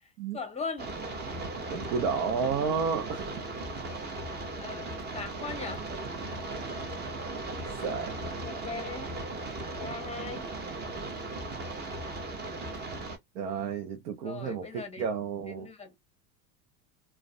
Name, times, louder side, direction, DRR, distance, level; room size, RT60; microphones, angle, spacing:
voice 1, 0.3-0.9 4.6-5.9 8.4-9.1 9.8-10.5 14.2-15.1 15.5-15.9, left 4 dB, 15° left, 0.7 m, -39 dB
sound 1, 0.8-13.2, right 2 dB, 20° right, 0.7 m, -37 dB
voice 2, 1.3-3.4 7.8-8.2 13.4-15.7, right 6 dB, 70° right, 0.7 m, -32 dB
2.4 x 2.2 x 2.4 m
hypercardioid pair, 90°, 50 cm